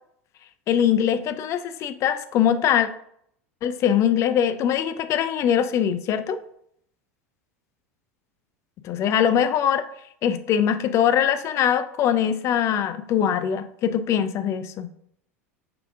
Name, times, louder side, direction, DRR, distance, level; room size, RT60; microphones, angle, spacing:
voice 1, 0.7-2.9 3.6-6.4 8.8-9.9 10.2-14.9, left 9 dB, 40° left, 12 dB, 0.4 m, -22 dB
5.7 x 3.4 x 2.5 m, 0.69 s
figure-of-eight pair, 80°, 8 cm